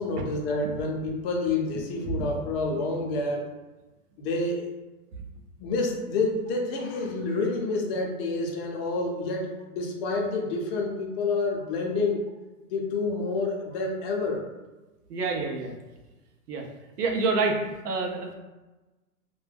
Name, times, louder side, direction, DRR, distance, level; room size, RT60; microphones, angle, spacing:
voice 1, 0.0-3.5 4.2-4.7 5.6-12.3 12.7-14.5, left 3 dB, 40° left, 1 dB, 0.5 m, -28 dB
voice 2, 15.1-15.7 16.5-16.6 17.0-17.6 17.8-18.3, right 4 dB, 85° right, 2 dB, 0.7 m, -27 dB
2.2 x 2.1 x 3.2 m, 1.1 s
hypercardioid pair, 125°, 47 cm